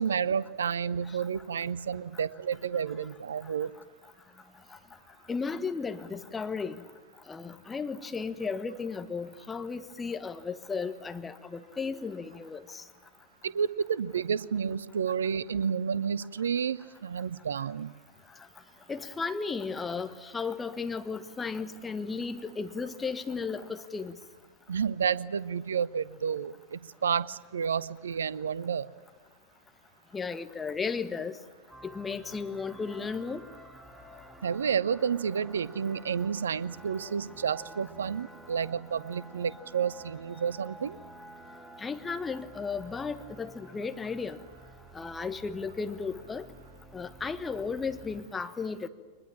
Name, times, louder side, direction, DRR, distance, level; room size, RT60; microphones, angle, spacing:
voice 1, 0.0-3.7 13.4-17.9 24.7-28.9 34.4-41.0, right 7 dB, 70° right, 0.7 m, -30 dB
voice 2, 5.3-6.8 7.3-12.8 18.9-24.1 30.1-31.4 31.8-33.4 41.8-44.4 44.9-46.4 46.9-48.9, left 5 dB, 15° left, 1.4 m, -35 dB
sound 1, 31.7-48.2, right 1 dB, 5° right, 2.1 m, -51 dB
23.5 x 21.0 x 8.8 m
figure-of-eight pair, 90°, 0 cm